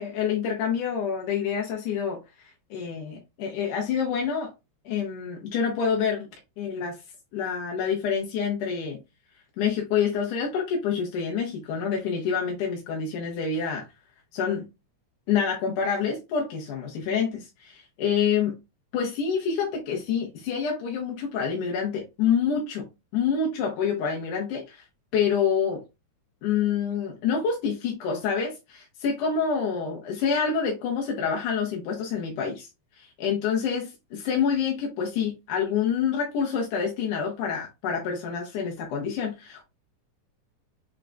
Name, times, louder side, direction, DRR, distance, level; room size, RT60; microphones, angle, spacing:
voice 1, 0.0-2.2 2.7-4.5 4.9-6.3 6.6-6.9 7.3-9.0 9.6-13.8 14.3-14.6 15.3-18.5 18.9-22.9 23.1-24.8 25.1-25.8 26.4-32.7 33.0-39.6, left 6 dB, 80° left, 2.5 m, -27 dB
6.2 x 3.7 x 2.3 m
omnidirectional pair, 3.6 m